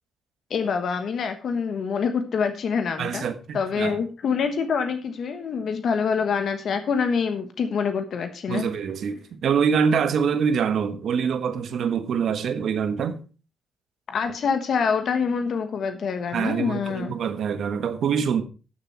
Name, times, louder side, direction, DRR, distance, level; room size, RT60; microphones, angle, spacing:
voice 1, 0.5-3.2 3.5-8.6 14.1-17.1, left 6 dB, 60° left, 1.2 m, -26 dB
voice 2, 3.0-4.0 8.5-13.2 16.3-18.4, right 6 dB, 70° right, 1.3 m, -25 dB
13.0 x 6.8 x 4.5 m
cardioid pair, 120°, 0 cm